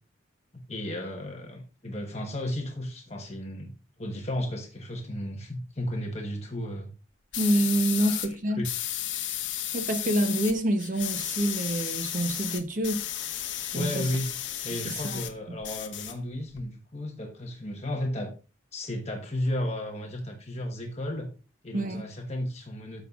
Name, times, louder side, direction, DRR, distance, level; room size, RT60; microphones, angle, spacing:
voice 1, 0.5-3.7 4.0-6.9 8.0-8.3 8.6-8.7 13.7-14.3 14.6-18.3 18.7-21.3 21.6-23.0, left 1 dB, 35° left, 1.2 m, -34 dB
sound 1, 7.3-8.3 8.6-10.5 10.8-15.3 15.6-16.6, left 11 dB, 65° left, 0.9 m, -33 dB
voice 2, 7.4-8.6 9.7-13.0 13.7-14.1 14.8-15.2 15.5-15.6 21.7-22.1, right 1 dB, 40° right, 0.8 m, -27 dB
13.5 x 5.5 x 2.4 m
head